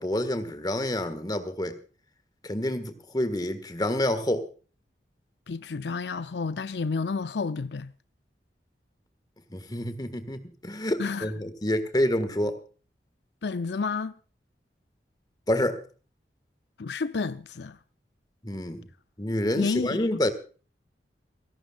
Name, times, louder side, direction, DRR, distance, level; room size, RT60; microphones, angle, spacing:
voice 1, 0.0-1.8 2.4-4.5 9.5-12.6 15.5-15.8 18.4-18.9 19.2-20.3, left 1 dB, 25° left, 1.6 m, -28 dB
voice 2, 5.5-7.9 11.0-11.3 13.4-14.1 16.8-17.8 19.6-20.2, left 4 dB, 75° left, 0.6 m, -30 dB
28.5 x 11.5 x 2.4 m
head